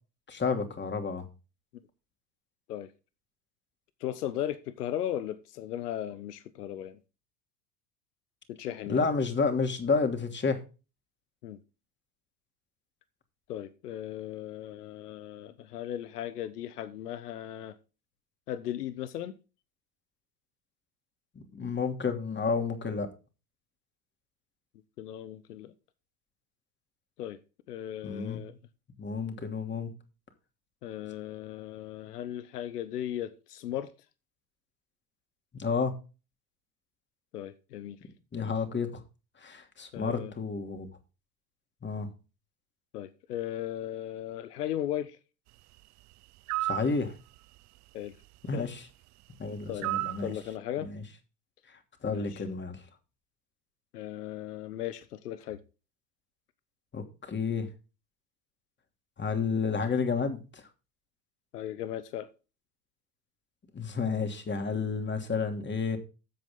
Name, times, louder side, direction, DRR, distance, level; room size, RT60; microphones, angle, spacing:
voice 1, 0.3-1.2 8.9-10.6 21.3-23.1 28.0-28.4 29.0-29.9 35.5-35.9 38.3-38.9 39.4-40.9 41.8-42.1 46.6-47.1 48.5-48.8 49.4-50.3 50.8-51.0 52.0-52.8 56.9-57.7 59.2-60.4 63.7-66.0, left 5 dB, 25° left, 2.9 m, -30 dB
voice 2, 4.0-7.0 8.5-9.1 11.4-11.6 13.5-17.8 18.5-19.3 25.0-25.7 27.2-27.4 27.7-28.6 30.8-33.9 37.3-38.0 39.9-40.3 42.9-45.2 47.9-48.1 48.5-48.7 49.7-49.9 50.2-50.9 52.0-52.4 53.9-55.6 61.5-62.3, left 11 dB, 85° left, 1.1 m, -37 dB
sound 1, 46.5-46.9 49.8-50.2, right 17 dB, 40° right, 0.5 m, -30 dB
13.5 x 7.9 x 3.7 m
hypercardioid pair, 85°, 46 cm